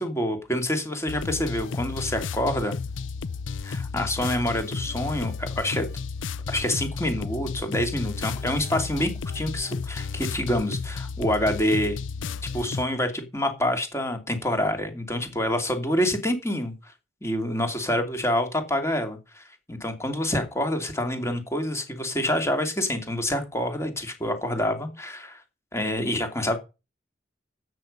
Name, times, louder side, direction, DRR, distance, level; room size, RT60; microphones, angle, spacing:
voice 1, 0.0-2.8 3.6-5.9 6.5-12.0 12.5-16.9 17.2-25.4 25.7-26.6, left 1 dB, 15° left, 2.7 m, -27 dB
sound 1, 1.1-12.8, left 5 dB, 85° left, 0.6 m, -33 dB
13.0 x 8.5 x 5.4 m
head